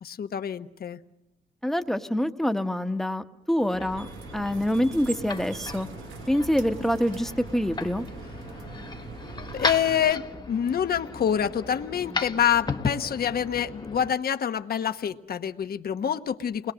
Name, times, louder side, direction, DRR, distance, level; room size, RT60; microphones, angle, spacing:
voice 1, 0.0-1.0 9.5-16.7, left 9 dB, 50° left, 9 dB, 1.2 m, -27 dB
voice 2, 1.6-4.1 4.3-5.9 6.3-8.1, equal, ahead, 7 dB, 1.3 m, -26 dB
sound 1, 3.6-14.1, left 3 dB, 20° left, 1.2 m, -36 dB
sound 2, 3.9-10.1, right 6 dB, 80° right, 1.3 m, -42 dB
29.0 x 21.5 x 6.3 m, 0.92 s
cardioid pair, 90°, 20 cm